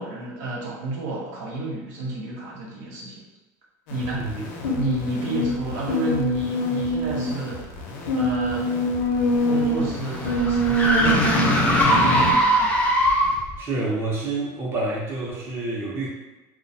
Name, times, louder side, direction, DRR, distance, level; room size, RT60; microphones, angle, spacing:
voice 1, 0.0-3.2 3.9-4.3 4.7-7.6 8.1-8.7 9.4-12.8, right 2 dB, 85° right, -5 dB, 0.8 m, -31 dB
sound 1, 3.9-12.3, equal, 90° left, 0.5 m, -24 dB
sound 2, 9.0-13.6, equal, 15° left, 0.3 m, -21 dB
voice 2, 13.6-16.1, right 2 dB, 30° right, -4 dB, 0.6 m, -28 dB
2.2 x 2.1 x 2.6 m, 1.1 s
cardioid pair, 135°, 8 cm